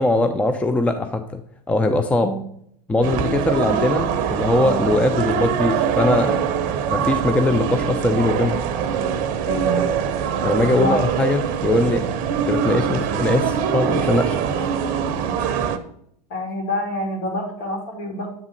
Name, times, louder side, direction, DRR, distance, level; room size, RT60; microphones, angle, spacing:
voice 1, 0.0-1.4 1.7-2.3 2.9-6.5 6.9-8.6 10.4-12.0 12.5-14.6 15.4-15.6, left 2 dB, 5° left, 7 dB, 0.4 m, -21 dB
sound 1, 3.0-15.8, right 7 dB, 45° right, 0.7 m, -23 dB
voice 2, 9.4-9.9 10.8-11.0 16.3-18.3, left 1 dB, 60° left, -1 dB, 3.0 m, -26 dB
7.4 x 3.6 x 5.1 m, 0.70 s
hypercardioid pair, 105°, 20 cm